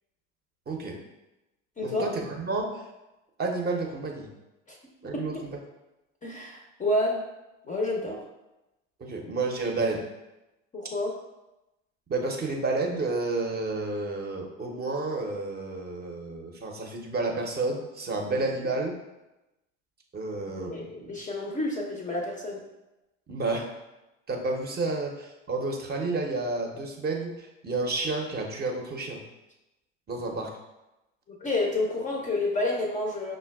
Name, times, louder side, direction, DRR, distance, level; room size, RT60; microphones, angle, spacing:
voice 1, 0.7-1.0 1.8-2.7 3.4-4.3 5.0-5.5 9.0-10.0 12.1-19.0 20.1-21.1 23.3-23.7 24.3-29.2 30.1-30.5, right 3 dB, 25° right, 1 dB, 0.6 m, -30 dB
voice 2, 6.2-7.2 7.7-8.2 10.7-11.1 20.7-22.6 31.4-33.4, left 2 dB, 20° left, 0 dB, 0.5 m, -29 dB
5.4 x 2.2 x 2.2 m, 0.98 s
hypercardioid pair, 70°, 38 cm